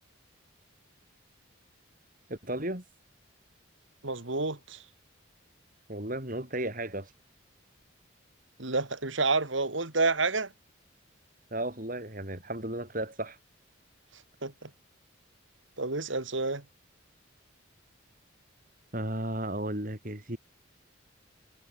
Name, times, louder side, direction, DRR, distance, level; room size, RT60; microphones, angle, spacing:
voice 1, 2.3-2.8 5.9-7.1 11.5-13.4 18.9-20.4, right 1 dB, 40° right, 5.2 m, -34 dB
voice 2, 4.0-4.8 8.6-10.5 14.4-14.7 15.8-16.6, right 3 dB, 70° right, 2.6 m, -29 dB
head